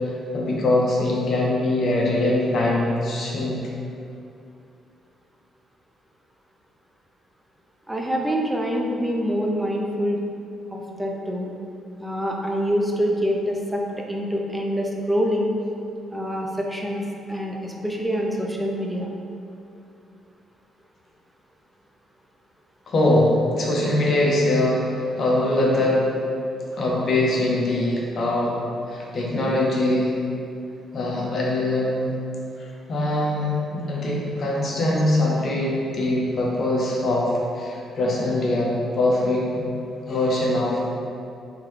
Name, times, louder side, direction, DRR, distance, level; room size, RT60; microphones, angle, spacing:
voice 1, 0.3-3.6 22.9-26.1 26.7-28.6 28.9-30.1 30.9-32.1 32.9-39.4 40.1-40.8, left 1 dB, 50° left, -3 dB, 0.8 m, -22 dB
voice 2, 7.9-10.2 10.7-11.5 12.0-15.5 16.1-17.0 17.3-19.1, equal, 5° right, -1 dB, 0.5 m, -25 dB
3.7 x 3.1 x 3.2 m, 2.6 s
cardioid pair, 90°, 0 cm